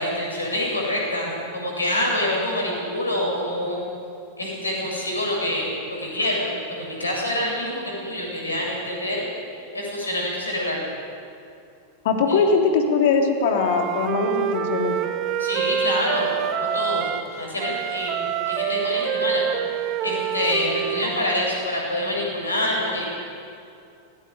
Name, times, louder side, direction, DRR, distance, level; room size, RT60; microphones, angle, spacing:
voice 1, 0.0-3.8 4.4-9.2 9.7-10.8 12.3-12.4 15.4-16.3 16.7-17.1 17.4-19.4 20.0-23.0, left 1 dB, 80° left, -2 dB, 7.9 m, -26 dB
voice 2, 12.0-14.9, left 4 dB, 55° left, 2 dB, 3.2 m, -21 dB
Wind instrument woodwind instrument, 13.5-17.3 17.6-21.4, right 9 dB, 35° right, 1.2 m, -26 dB
19.0 x 18.5 x 9.8 m, 2.5 s
figure-of-eight pair, 90°, 0 cm